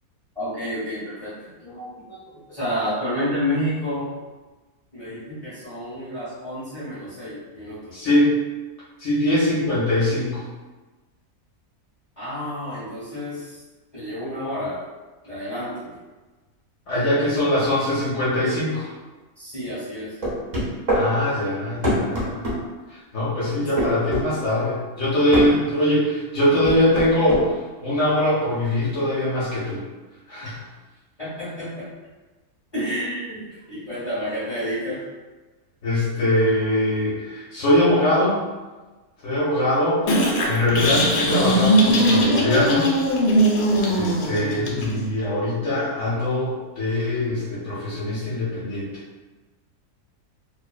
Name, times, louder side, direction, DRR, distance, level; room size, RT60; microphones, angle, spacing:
voice 1, 0.3-4.1 4.9-7.9 12.2-13.6 13.9-14.8 15.2-16.0 19.4-20.2 30.4-30.5 31.2-31.9 32.7-35.1 39.6-39.7, equal, 30° left, -12 dB, 0.8 m, -30 dB
voice 2, 7.9-8.3 9.0-10.4 16.9-18.9 20.9-22.4 22.9-27.5 27.8-29.8 30.3-30.6 35.8-38.4 39.2-42.9 43.9-48.9, left 1 dB, 60° left, -9 dB, 0.9 m, -22 dB
sound 1, 20.2-21.1 21.8-22.6 23.8-24.3 25.3-25.5 26.6-27.4, equal, 55° right, 0.4 m, -23 dB
sound 2, 40.1-45.1, equal, 85° left, 1.1 m, -20 dB
2.6 x 2.0 x 2.3 m, 1.2 s
omnidirectional pair, 1.6 m